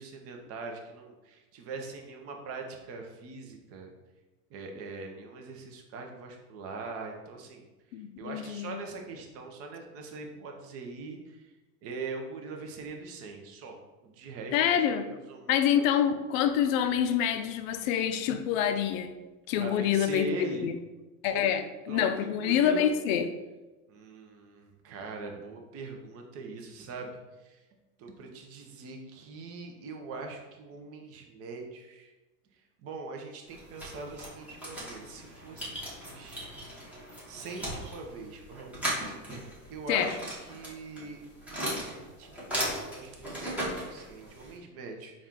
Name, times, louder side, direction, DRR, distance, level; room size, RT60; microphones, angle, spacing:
voice 1, 0.0-3.9 4.5-7.6 8.2-11.4 11.8-15.9 19.6-20.7 21.3-22.9 23.9-27.2 27.4-27.6 28.0-32.1 32.8-36.4 37.3-38.7 39.7-45.3, right 3 dB, 30° right, 2 dB, 0.6 m, -42 dB
voice 2, 7.9-8.8 14.5-15.1 15.5-19.1 19.5-20.3 20.6-20.8 21.2-23.3 39.9-40.1, left 9 dB, 60° left, 9 dB, 0.5 m, -26 dB
sound 1, 33.5-44.6, equal, 5° right, 0.9 m, -37 dB
4.1 x 2.4 x 3.7 m, 1.1 s
supercardioid pair, 130°, 46 cm